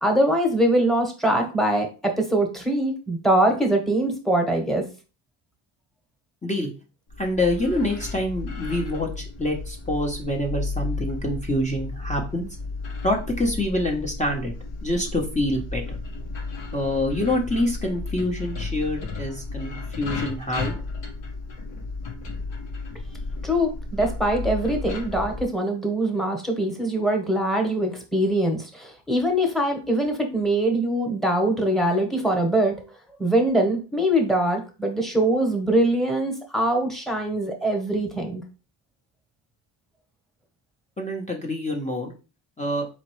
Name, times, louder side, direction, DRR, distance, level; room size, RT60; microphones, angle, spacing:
voice 1, 0.0-4.8 23.4-32.7 33.2-38.4, right 1 dB, ahead, 3 dB, 1.2 m, -23 dB
sound 1, 7.1-25.4, left 3 dB, 70° left, 1.2 m, -33 dB
voice 2, 7.2-12.5 13.0-14.5 14.8-16.0 16.7-20.7 41.0-42.1 42.6-42.9, left 1 dB, 15° left, 0 dB, 0.8 m, -26 dB
4.2 x 3.0 x 3.1 m, 0.33 s
cardioid pair, 95°, 46 cm